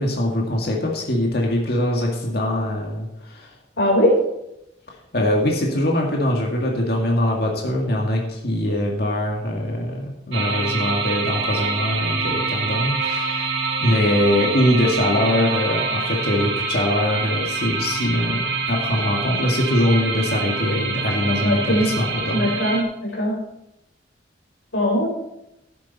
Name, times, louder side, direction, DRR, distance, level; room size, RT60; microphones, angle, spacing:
voice 1, 0.0-3.5 5.1-13.5 13.8-22.5, left 1 dB, 55° left, 0 dB, 2.0 m, -22 dB
voice 2, 3.8-4.2 21.4-21.9 22.3-23.4 24.7-25.1, equal, 80° left, -1 dB, 4.5 m, -20 dB
sound 1, 10.3-22.8, right 4 dB, 75° right, 1.9 m, -26 dB
11.5 x 9.6 x 4.2 m, 0.85 s
head